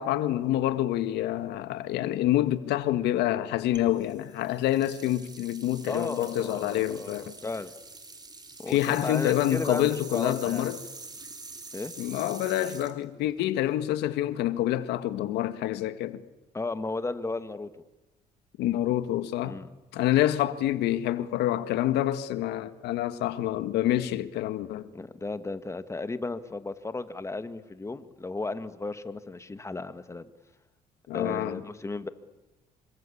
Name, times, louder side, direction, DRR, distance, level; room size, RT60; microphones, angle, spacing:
voice 1, 0.0-7.3 8.7-10.8 12.0-16.2 18.6-19.6 19.9-24.9 31.1-31.6, left 13 dB, 85° left, 1.7 m, -27 dB
sound 1, 3.7-13.9, right 3 dB, 25° right, 4.0 m, -45 dB
voice 2, 5.9-7.7 8.6-10.7 11.7-11.9 16.5-17.7 19.4-19.7 24.9-30.3 31.1-32.1, left 3 dB, 15° left, 1.8 m, -34 dB
27.5 x 25.0 x 8.6 m
cardioid pair, 110°, 17 cm